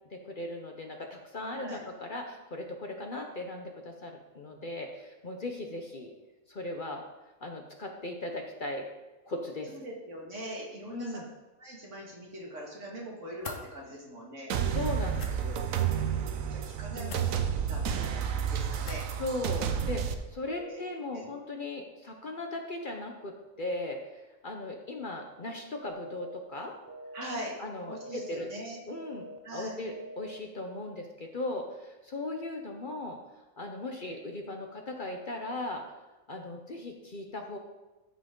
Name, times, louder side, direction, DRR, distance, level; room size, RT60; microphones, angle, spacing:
voice 1, 0.1-6.1 6.5-7.0 7.4-8.9 9.3-9.8 10.9-11.3 14.7-15.7 16.9-17.2 19.2-26.7 27.6-28.5 28.9-29.3 29.5-33.2 33.6-35.8 36.3-37.6, left 2 dB, 45° left, 3 dB, 0.9 m, -38 dB
voice 2, 9.7-11.2 11.6-14.5 15.7-19.0 20.5-21.2 27.1-27.6 27.9-28.9 29.4-29.8, right 1 dB, 65° right, -2 dB, 2.3 m, -42 dB
sound 1, 13.4-13.6 15.1-15.3 17.1-17.3 18.8-19.1, left 5 dB, 75° left, 1.4 m, -41 dB
sound 2, 14.5-20.1, right 8 dB, 80° right, 1.1 m, -30 dB
sound 3, 25.9-26.4 26.9-27.4 27.9-28.4 28.9-29.4 29.9-30.4, right 1 dB, 15° right, 0.9 m, -45 dB
13.0 x 5.7 x 3.8 m, 1.1 s
omnidirectional pair, 1.4 m